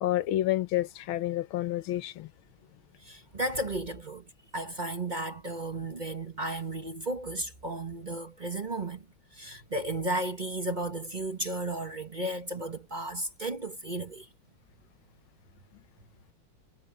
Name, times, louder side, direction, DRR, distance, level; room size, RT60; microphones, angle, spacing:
voice 1, 0.0-2.3, left 14 dB, 85° left, 1.7 m, -29 dB
voice 2, 3.0-9.0 9.3-14.3, right 1 dB, 25° right, 1.2 m, -34 dB
omnidirectional pair, 2.2 m